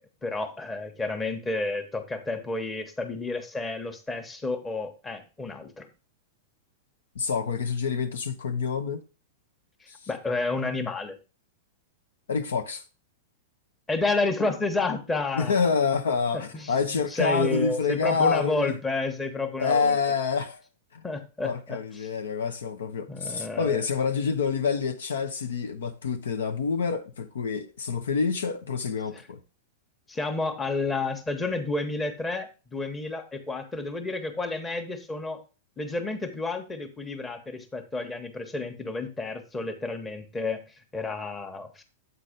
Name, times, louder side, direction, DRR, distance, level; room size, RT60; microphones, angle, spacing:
voice 1, 0.2-5.9 10.1-11.2 13.9-15.7 16.5-20.0 21.0-21.8 23.1-23.8 30.1-35.4 35.8-40.6 40.9-41.8, left 3 dB, 15° left, 1.2 m, -30 dB
voice 2, 7.1-9.0 9.9-10.0 12.3-12.8 15.3-18.8 19.6-20.6 20.9-21.0 21.4-29.4, left 5 dB, 85° left, 0.8 m, -27 dB
8.0 x 4.1 x 5.1 m
hypercardioid pair, 120°, 0 cm